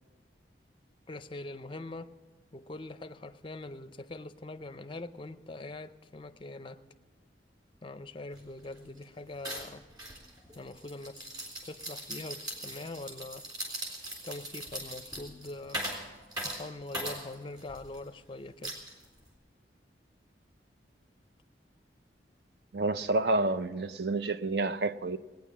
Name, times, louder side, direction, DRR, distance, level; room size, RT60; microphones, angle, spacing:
voice 1, 1.1-2.1 2.5-6.8 7.8-9.8 10.5-11.3 11.7-13.4 14.2-15.8 16.4-18.8, left 2 dB, 30° left, 0.5 m, -43 dB
sound 1, 8.3-8.4 8.7-9.0 9.4-18.0 18.6-19.3, right 1 dB, 25° right, 3.5 m, -40 dB
voice 2, 22.7-25.2, right 2 dB, 65° right, 0.5 m, -29 dB
18.5 x 9.5 x 7.2 m
head